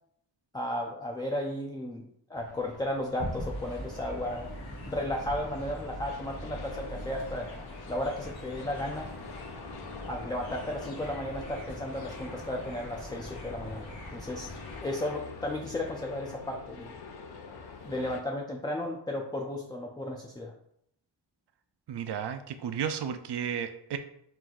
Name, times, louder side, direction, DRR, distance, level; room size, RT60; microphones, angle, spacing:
voice 1, 0.5-7.5 7.9-9.1 10.1-14.5 14.8-16.9 17.8-20.5, left 1 dB, 10° left, 0 dB, 0.3 m, -34 dB
sound 1, 2.4-18.2, left 4 dB, 60° left, 0.6 m, -46 dB
sound 2, 3.2-14.8, equal, 85° left, 1.6 m, -42 dB
voice 2, 21.9-24.0, right 8 dB, 65° right, 8 dB, 0.5 m, -33 dB
4.5 x 2.5 x 4.0 m, 0.71 s
wide cardioid pair, 155°, 45 cm